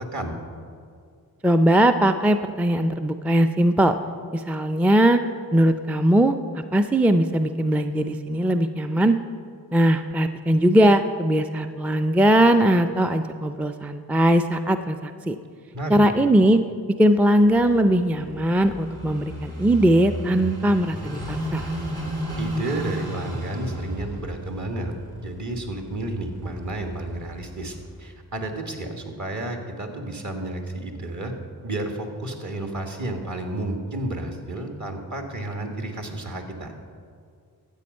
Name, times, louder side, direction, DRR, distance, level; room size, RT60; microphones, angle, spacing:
voice 1, 1.4-4.0 4.3-5.2 5.5-6.3 6.7-9.2 9.7-15.4 15.9-16.6 17.0-21.6, right 1 dB, 5° right, 8 dB, 0.4 m, -20 dB
voice 2, 15.7-16.1 22.4-24.9 25.2-31.3 31.6-36.7, right 1 dB, 50° right, 3 dB, 1.7 m, -31 dB
Car passing by / Idling, 17.5-28.1, equal, 75° right, 3.0 m, -34 dB
13.0 x 8.2 x 5.4 m, 2.2 s
cardioid pair, 70°, 38 cm